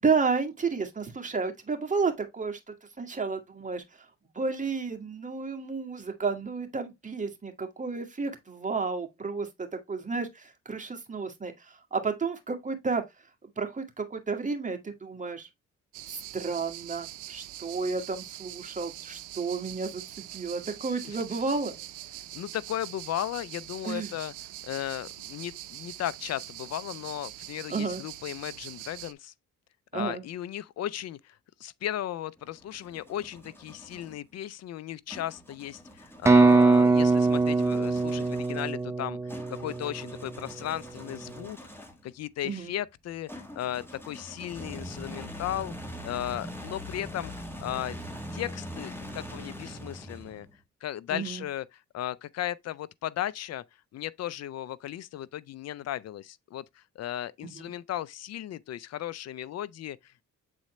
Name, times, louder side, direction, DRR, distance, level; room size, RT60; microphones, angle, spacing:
voice 1, 0.0-2.6 3.0-4.0 4.3-13.0 13.4-15.5 16.1-21.8 23.8-24.1 27.7-28.0 29.9-30.2 42.4-42.7 51.1-51.4 57.4-57.7, right 4 dB, 25° right, 1.8 m, -32 dB
sound 1, 15.9-29.1, right 15 dB, 80° right, 0.6 m, -43 dB
voice 2, 22.3-24.3 24.6-29.3 29.9-45.7 46.0-47.3 47.6-48.0 48.3-50.5 50.8-51.6 51.9-53.6 53.9-60.2, left 12 dB, 55° left, 0.5 m, -36 dB
sound 2, 32.4-34.2 35.1-42.1 43.3-50.6, left 1 dB, 5° left, 1.7 m, -43 dB
sound 3, 36.3-40.0, right 3 dB, 10° right, 0.3 m, -22 dB
7.8 x 4.1 x 3.1 m
cardioid pair, 90°, 30 cm